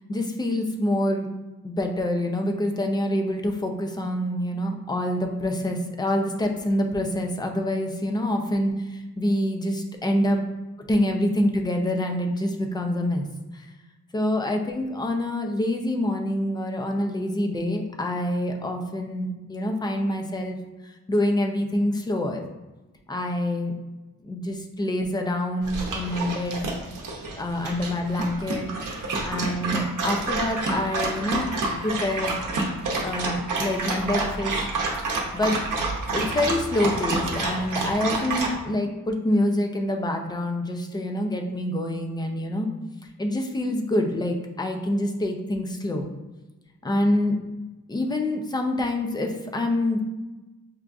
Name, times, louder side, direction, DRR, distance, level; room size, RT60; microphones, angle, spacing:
voice 1, 0.1-1.3 1.6-10.4 10.8-13.2 13.5-13.7 14.1-20.6 20.8-22.4 23.1-23.7 24.2-26.6 27.4-31.5 31.8-32.4 33.0-34.7 35.3-35.6 36.1-42.7 43.2-46.1 46.8-47.4 47.9-50.0, left 1 dB, 15° left, 3 dB, 0.3 m, -26 dB
Dog, 25.6-38.5, right 3 dB, 70° right, 0.7 m, -28 dB
5.9 x 2.4 x 2.3 m, 1.1 s
wide cardioid pair, 140°, 32 cm